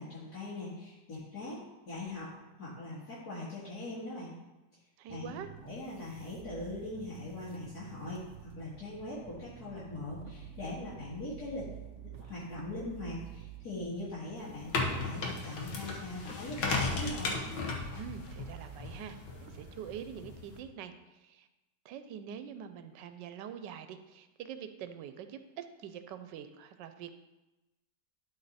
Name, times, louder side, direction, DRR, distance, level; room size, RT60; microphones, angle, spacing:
voice 1, 0.0-1.6 1.9-2.3 2.6-4.3 5.1-11.7 12.2-17.4, left 2 dB, 60° left, -10 dB, 2.3 m, -41 dB
voice 2, 5.0-5.5 18.0-21.5 21.8-27.1, right 8 dB, 90° right, 10 dB, 1.3 m, -45 dB
sound 1, 5.1-19.7, right 8 dB, 65° right, 0.7 m, -51 dB
sound 2, 14.4-20.6, left 3 dB, 90° left, 1.8 m, -36 dB
12.0 x 4.5 x 4.1 m, 1.0 s
omnidirectional pair, 1.9 m